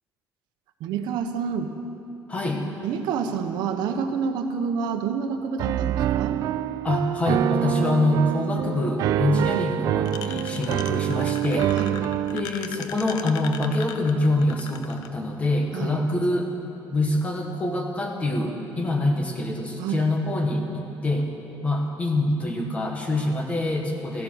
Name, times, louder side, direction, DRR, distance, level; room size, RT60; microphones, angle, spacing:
voice 1, 0.8-1.7 2.8-6.4 9.3-9.7 11.7-11.9 15.7-16.0 19.8-20.0, right 6 dB, 70° right, 7 dB, 1.2 m, -28 dB
voice 2, 2.3-2.6 6.8-11.7 12.3-16.5 16.9-21.3 21.6-24.2, left 2 dB, 20° left, 2 dB, 1.5 m, -25 dB
Piano, 5.6-12.4, right 12 dB, 50° right, 0.3 m, -26 dB
sound 1, 10.0-15.1, left 8 dB, 65° left, 0.8 m, -38 dB
15.5 x 14.5 x 6.4 m, 2.8 s
cardioid pair, 175°, 8 cm